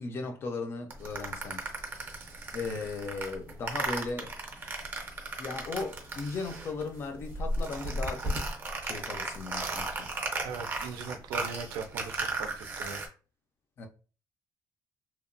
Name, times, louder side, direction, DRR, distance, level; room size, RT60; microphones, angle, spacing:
voice 1, 0.0-1.6 2.5-4.4 5.4-8.4 8.8-10.1 13.8-13.9, left 4 dB, 35° left, 0.4 m, -37 dB
sound 1, 0.9-6.9 7.2-13.1, right 2 dB, 30° right, 0.5 m, -35 dB
voice 2, 10.4-13.0, right 5 dB, 80° right, 0.4 m, -39 dB
2.8 x 2.1 x 2.5 m
cardioid pair, 175°, 7 cm